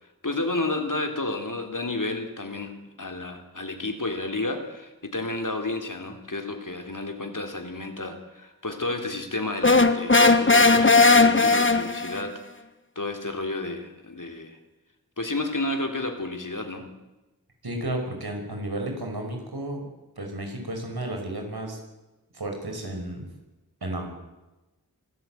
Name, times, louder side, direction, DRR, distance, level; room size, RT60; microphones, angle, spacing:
voice 1, 0.2-12.4 12.9-14.6 15.2-16.9, left 2 dB, 55° left, 5 dB, 3.4 m, -31 dB
sound 1, 9.6-12.2, left 3 dB, 30° left, 1.5 m, -17 dB
voice 2, 17.6-19.9 20.2-21.8 22.3-23.3 23.8-24.1, right 1 dB, 80° right, 3 dB, 5.7 m, -32 dB
24.5 x 13.5 x 9.3 m, 1.1 s
wide cardioid pair, 45°, 37 cm